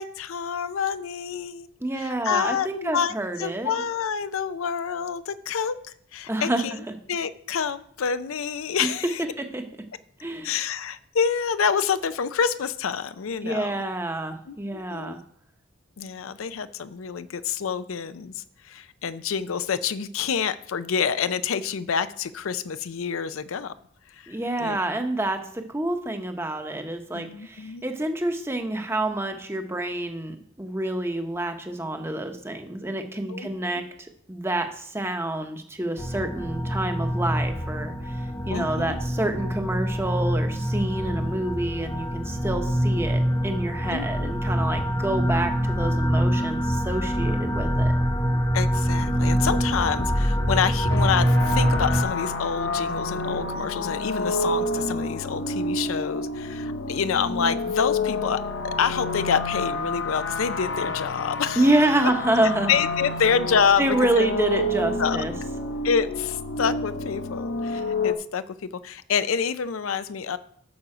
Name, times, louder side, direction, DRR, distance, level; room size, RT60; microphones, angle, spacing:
voice 1, 0.0-1.7 2.0-3.1 3.4-5.8 6.1-6.7 7.1-9.2 10.4-13.8 14.5-15.2 16.0-23.7 24.2-24.8 27.1-27.8 33.3-33.5 38.5-39.0 43.9-44.3 48.5-61.6 62.7-64.3 65.0-65.2 65.8-68.5 68.8-70.4, left 6 dB, 85° left, 13 dB, 0.5 m, -27 dB
voice 2, 1.8-3.7 6.3-6.6 8.8-8.9 9.4-9.6 10.2-10.5 13.4-15.2 24.3-47.9 61.6-62.7 63.8-65.3, right 1 dB, 10° right, 6 dB, 0.8 m, -27 dB
sound 1, 36.0-52.0, equal, 20° left, 1.0 m, -25 dB
sound 2, 50.9-68.1, left 2 dB, 55° left, 0.8 m, -29 dB
8.7 x 6.8 x 4.9 m, 0.65 s
head